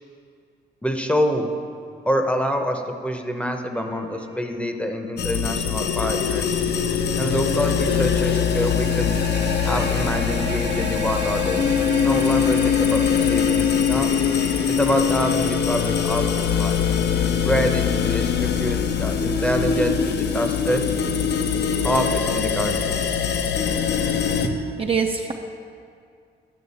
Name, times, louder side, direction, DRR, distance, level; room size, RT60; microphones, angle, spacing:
voice 1, 0.8-1.5 2.0-6.6 7.2-9.2 9.6-11.7 12.0-14.1 14.7-16.2 16.6-16.8 17.4-20.8 21.8-23.1, equal, 5° left, 4 dB, 0.7 m, -26 dB
sound 1, 3.7-7.0 7.8-22.7, right 4 dB, 75° right, 1.0 m, -38 dB
sound 2, 5.2-24.5, left 7 dB, 60° left, 0.6 m, -22 dB
voice 2, 24.4-25.3, right 6 dB, 30° right, 3 dB, 0.5 m, -25 dB
10.0 x 6.2 x 4.1 m, 2.3 s
cardioid pair, 90°, 20 cm